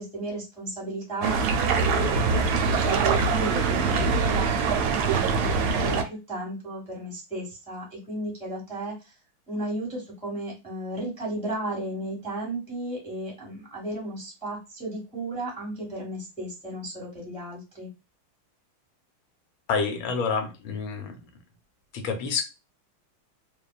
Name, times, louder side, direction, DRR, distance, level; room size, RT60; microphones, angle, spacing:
voice 1, 0.0-1.6 1.9-9.1 9.5-17.9, right 1 dB, 5° left, -4 dB, 0.8 m, -34 dB
sound 1, 1.2-6.0, right 5 dB, 80° right, 1.3 m, -23 dB
voice 2, 19.7-21.2 21.9-22.4, left 5 dB, 75° left, 6 dB, 1.4 m, -28 dB
3.3 x 2.2 x 2.3 m, 0.27 s
omnidirectional pair, 2.3 m